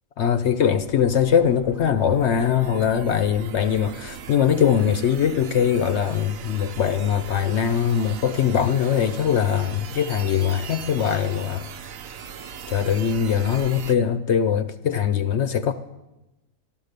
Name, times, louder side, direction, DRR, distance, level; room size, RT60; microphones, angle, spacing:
voice 1, 0.2-11.7 12.7-15.7, left 8 dB, 65° left, 0.7 m, -21 dB
sound 1, 0.7-14.0, right 7 dB, 65° right, 1.0 m, -39 dB
13.0 x 11.5 x 6.6 m
omnidirectional pair, 1.7 m